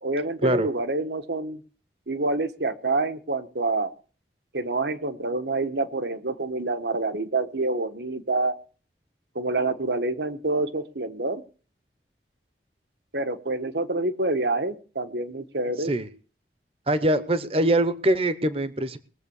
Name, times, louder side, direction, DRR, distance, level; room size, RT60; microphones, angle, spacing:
voice 1, 0.0-1.6 2.1-3.9 4.5-8.5 9.3-11.4 13.1-15.9, right 2 dB, 75° right, 8 dB, 1.3 m, -27 dB
voice 2, 16.9-19.0, right 1 dB, 35° right, 13 dB, 0.9 m, -23 dB
20.5 x 7.5 x 7.0 m, 0.40 s
head